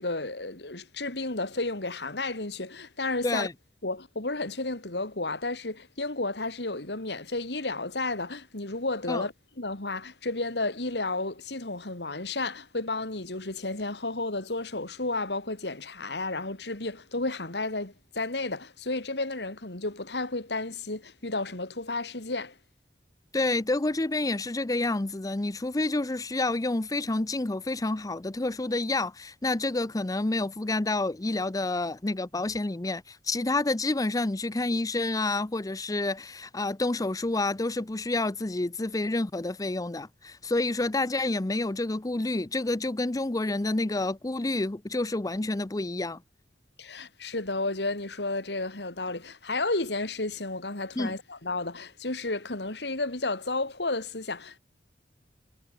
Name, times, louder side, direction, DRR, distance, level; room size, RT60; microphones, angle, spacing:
voice 1, 0.0-3.5 3.8-22.6 46.8-54.6, left 2 dB, 70° left, 2.8 m, -32 dB
voice 2, 23.3-46.2 51.0-51.2, left 2 dB, 20° left, 0.6 m, -29 dB
head